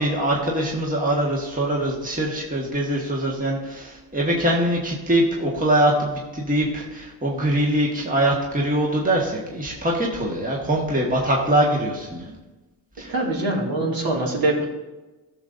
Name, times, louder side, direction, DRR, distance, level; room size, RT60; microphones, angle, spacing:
voice 1, 0.0-12.3 13.0-13.1, right 1 dB, 20° right, -2 dB, 1.6 m, -23 dB
voice 2, 13.1-14.7, right 2 dB, 50° right, -2 dB, 2.3 m, -23 dB
13.5 x 6.6 x 2.6 m, 1.1 s
supercardioid pair, 70°, 47 cm